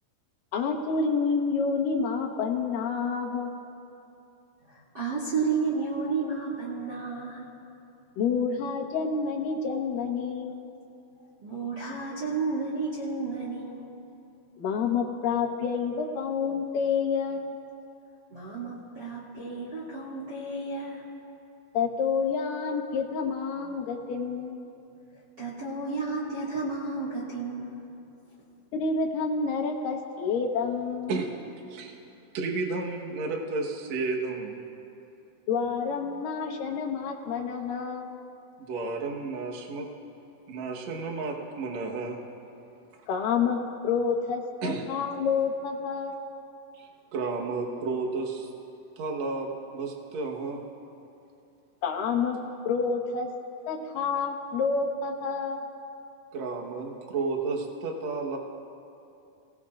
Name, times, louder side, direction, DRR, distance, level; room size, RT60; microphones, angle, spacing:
voice 1, 0.5-3.5 8.2-10.6 14.6-17.6 21.7-24.7 28.7-31.1 35.5-38.1 43.1-43.6 43.8-46.3 51.8-52.4 52.7-53.3 53.7-55.7, left 5 dB, 70° left, 1 dB, 2.1 m, -28 dB
voice 2, 4.7-7.5 11.4-13.8 18.3-21.0 25.1-27.8, right 4 dB, 30° right, -6 dB, 2.2 m, -32 dB
voice 3, 32.3-34.6 38.7-39.9 40.5-42.2 44.6-44.9 46.7-48.5 49.0-50.7 56.3-58.4, right 3 dB, 85° right, 0 dB, 1.5 m, -32 dB
30.0 x 18.5 x 2.5 m, 2.7 s
omnidirectional pair, 5.3 m